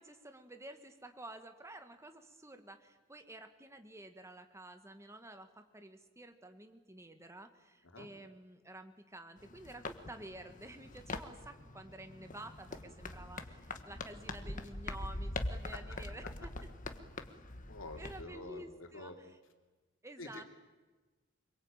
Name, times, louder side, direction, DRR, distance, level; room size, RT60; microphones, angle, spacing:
voice 1, 0.0-16.5 18.0-19.4 20.0-20.4, right 1 dB, 15° right, 7 dB, 1.8 m, -51 dB
sound 1, 9.4-18.2, left 2 dB, 40° left, 1.6 m, -43 dB
voice 2, 17.7-19.2 20.2-20.4, left 2 dB, 75° left, 4 dB, 3.4 m, -47 dB
25.5 x 23.0 x 9.0 m, 1.2 s
head